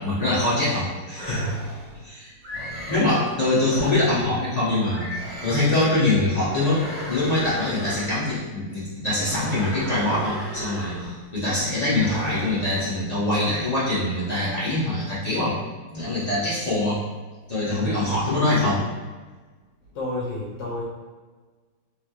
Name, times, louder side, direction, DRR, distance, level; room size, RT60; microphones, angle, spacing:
voice 1, 0.0-1.5 2.0-2.3 2.9-15.5 15.9-17.0 17.5-18.8, left 2 dB, 30° left, -10 dB, 0.7 m, -24 dB
sound 1, 1.1-1.9 2.4-3.2 3.7-4.3 4.9-5.9 6.4-8.3 9.1-11.3 11.9-12.7, equal, 55° right, 1.5 m, -35 dB
voice 2, 19.9-20.8, left 1 dB, 70° left, -6 dB, 1.3 m, -30 dB
3.3 x 3.3 x 2.3 m, 1.3 s
omnidirectional pair, 2.1 m